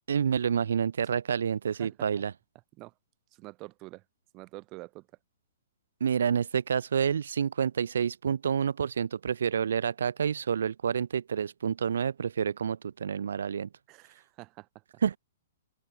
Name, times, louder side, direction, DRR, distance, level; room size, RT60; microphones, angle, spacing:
voice 1, 0.1-2.3 6.0-13.7 15.0-15.2, right 7 dB, 80° right, 0.4 m, -28 dB
voice 2, 3.3-4.0 4.3-5.1 13.9-14.8, right 22 dB, 35° right, 0.6 m, -46 dB
open air
hypercardioid pair, 135°, 0 cm